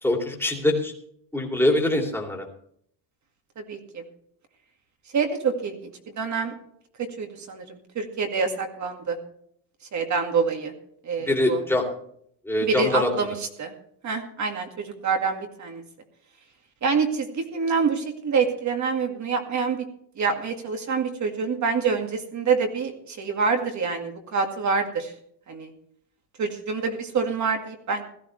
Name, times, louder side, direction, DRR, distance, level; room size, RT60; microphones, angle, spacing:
voice 1, 0.0-0.9 1.3-2.5 11.2-11.8 12.4-13.1, left 1 dB, 5° left, 1 dB, 2.8 m, -23 dB
voice 2, 3.6-4.0 5.1-6.5 7.0-9.2 9.9-10.7 11.0-11.6 12.6-13.7 14.0-15.8 16.8-19.8 20.2-25.1 25.5-25.7 26.4-28.0, right 5 dB, 35° right, 4 dB, 2.1 m, -26 dB
17.0 x 13.5 x 3.3 m, 0.67 s
cardioid pair, 135°, 50 cm